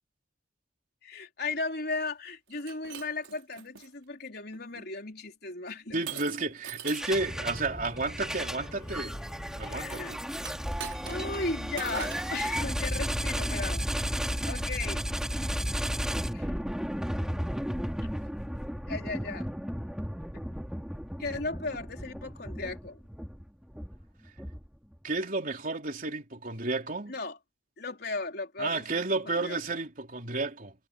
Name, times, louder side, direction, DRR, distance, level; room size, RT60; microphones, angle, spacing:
voice 1, 1.0-6.2 9.7-10.2 11.0-14.2 14.5-15.0 16.3-16.5 18.9-19.5 21.2-23.0 27.1-27.4 27.8-29.8, left 3 dB, 55° left, 4.2 m, -36 dB
Shatter, 2.5-3.9 4.5-4.9 6.1-7.2 10.4-11.4 11.8-12.4, right 7 dB, 90° right, 6.1 m, -42 dB
voice 2, 5.9-9.1 9.6-10.2 25.0-27.1 28.6-30.7, right 3 dB, 45° right, 3.6 m, -32 dB
sound 1, 6.8-7.6 8.0-24.9, equal, 5° right, 2.7 m, -34 dB
sound 2, 7.1-12.9, equal, 20° left, 6.3 m, -46 dB
head